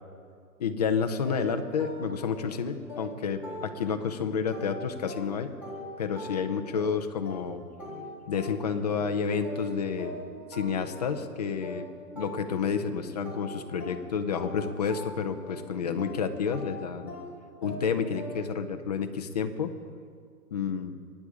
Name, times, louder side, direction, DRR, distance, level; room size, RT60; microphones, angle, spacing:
voice 1, 0.6-5.5 6.0-7.6 8.3-10.1 10.5-11.9 12.1-17.1 17.6-19.7 20.5-20.9, left 6 dB, 25° left, 7 dB, 0.6 m, -30 dB
sound 1, 1.2-4.1 4.5-12.9 13.2-18.7, left 1 dB, 5° right, 4.0 m, -42 dB
23.5 x 9.5 x 4.9 m, 2.2 s
hypercardioid pair, 165°, 47 cm